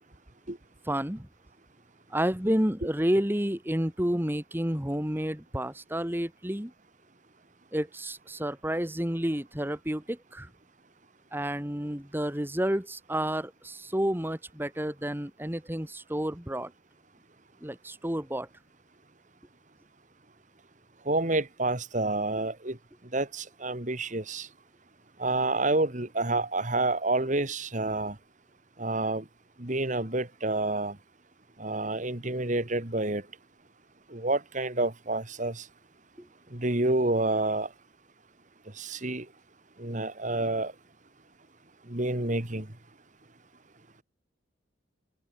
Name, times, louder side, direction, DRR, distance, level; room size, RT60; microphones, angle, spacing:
voice 1, 0.9-1.3 2.1-6.7 7.7-10.5 11.3-16.7 17.6-18.5 36.2-36.3, equal, 10° right, 1.7 m, -30 dB
voice 2, 21.1-22.8 23.1-24.5 25.2-28.2 28.8-29.2 29.6-31.0 31.6-33.2 34.1-35.7 36.5-37.7 38.8-39.3 39.8-40.7 41.9-42.7, right 2 dB, 40° right, 2.2 m, -28 dB
head